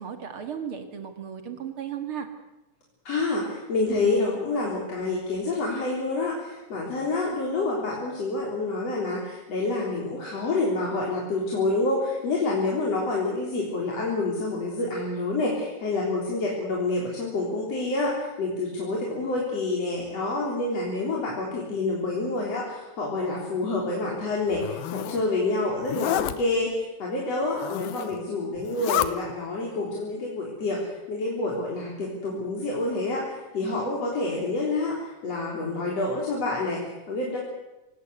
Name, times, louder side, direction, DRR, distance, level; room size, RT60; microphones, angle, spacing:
voice 1, 0.0-2.3, right 8 dB, 50° right, 7 dB, 1.6 m, -35 dB
voice 2, 3.0-37.4, left 2 dB, 40° left, -3 dB, 4.3 m, -28 dB
Zipper (clothing), 24.4-25.2 25.8-26.3 27.4-28.2 28.6-29.1, left 13 dB, 75° left, 2.4 m, -29 dB
25.0 x 18.5 x 8.1 m, 1.0 s
omnidirectional pair, 5.1 m